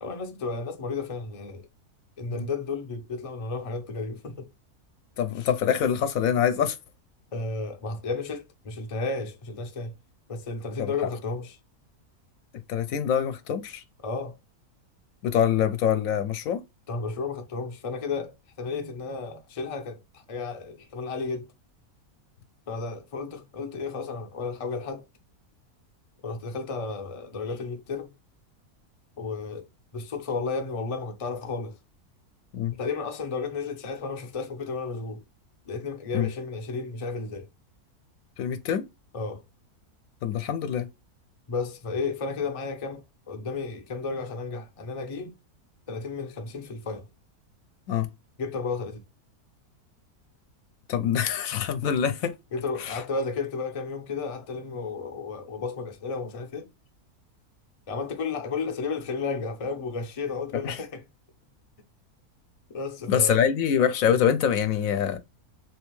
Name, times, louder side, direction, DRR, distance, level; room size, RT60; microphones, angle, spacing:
voice 1, 0.0-1.7 2.2-4.5 5.4-5.5 7.3-9.9 10.3-11.6 14.0-14.4 16.9-21.5 22.7-25.0 26.2-28.1 29.2-29.7 29.9-31.8 32.8-35.2 35.7-37.5 39.1-39.4 41.5-45.3 45.9-47.1 48.4-49.0 52.5-56.7 57.9-61.0 62.7-63.4, left 4 dB, 50° left, 0.4 m, -33 dB
voice 2, 5.2-6.8 10.8-10.9 12.7-13.8 15.2-16.6 32.5-32.7 36.1-36.3 38.4-38.8 40.2-40.9 47.9-48.1 50.9-52.3 52.8-53.0 60.6-60.8 63.1-65.2, left 8 dB, 70° left, 0.9 m, -25 dB
3.3 x 3.2 x 3.0 m
omnidirectional pair, 1.6 m